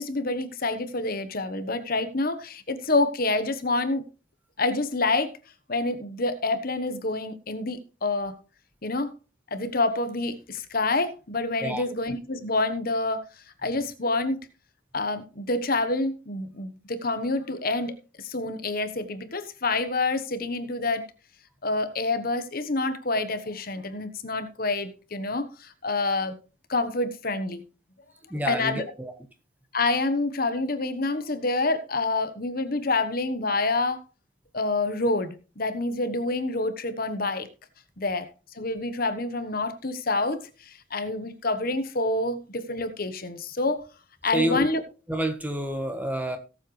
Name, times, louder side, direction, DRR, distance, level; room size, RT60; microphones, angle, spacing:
voice 1, 0.0-4.1 4.6-5.3 5.7-8.4 8.8-9.1 9.5-13.3 13.6-14.4 14.9-21.0 21.6-26.4 26.7-27.6 28.5-28.9 29.7-34.0 34.5-37.5 38.0-38.3 38.5-43.8 44.2-44.8, left 2 dB, 45° left, 10 dB, 1.2 m, -27 dB
voice 2, 28.3-29.1 44.3-44.7 45.1-46.4, right 1 dB, 10° right, 7 dB, 1.4 m, -28 dB
18.0 x 7.6 x 3.3 m, 0.33 s
head